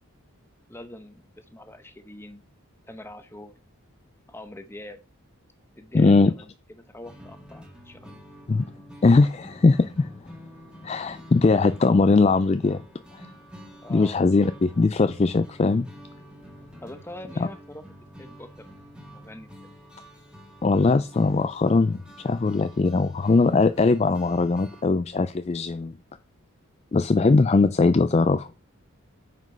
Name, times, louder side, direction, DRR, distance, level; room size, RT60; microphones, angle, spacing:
voice 1, 0.7-2.4 2.9-3.5 4.3-5.0 5.8-8.3 13.8-14.3 16.8-17.8 18.2-18.7 19.1-19.7, left 1 dB, 10° left, 9 dB, 0.8 m, -44 dB
voice 2, 5.9-6.3 8.5-8.7 9.0-10.1 10.8-12.8 13.1-13.3 13.9-15.9 20.6-25.9 26.9-28.5, left 3 dB, 30° left, 11 dB, 0.3 m, -20 dB
sound 1, 7.0-24.8, equal, 5° right, 1.5 m, -48 dB
9.3 x 5.1 x 5.4 m, 0.34 s
head